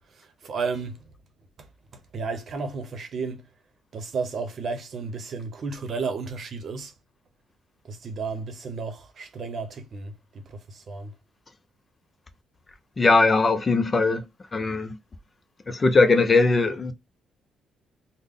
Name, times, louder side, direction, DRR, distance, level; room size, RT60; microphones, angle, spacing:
voice 1, 0.2-1.0 1.9-3.4 3.9-6.9 7.9-10.1 10.5-11.1, right 4 dB, 55° right, 0.8 m, -33 dB
voice 2, 13.0-14.2 14.5-15.0 15.7-16.9, left 3 dB, 30° left, 0.5 m, -20 dB
3.5 x 2.1 x 3.6 m
cardioid pair, 90°, 0 cm